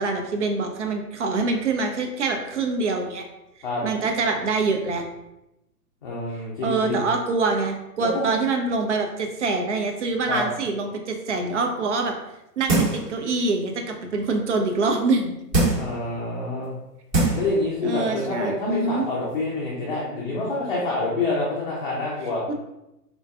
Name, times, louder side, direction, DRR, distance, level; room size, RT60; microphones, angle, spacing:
voice 1, 0.0-3.3 3.6-5.0 6.6-12.1 12.6-15.3 17.8-19.1 22.5-22.6, right 3 dB, 50° right, 3 dB, 0.5 m, -25 dB
voice 2, 6.0-7.0 8.0-8.3 10.3-10.5 15.7-16.7 17.3-22.4, left 2 dB, 30° left, -5 dB, 0.5 m, -27 dB
sound 1, 12.7-13.1 13.6-13.7 15.5-16.0 16.7-16.8 17.1-17.5 17.9-18.0, right 2 dB, 15° right, 0.8 m, -21 dB
3.7 x 2.2 x 2.3 m, 0.90 s
figure-of-eight pair, 120°, 49 cm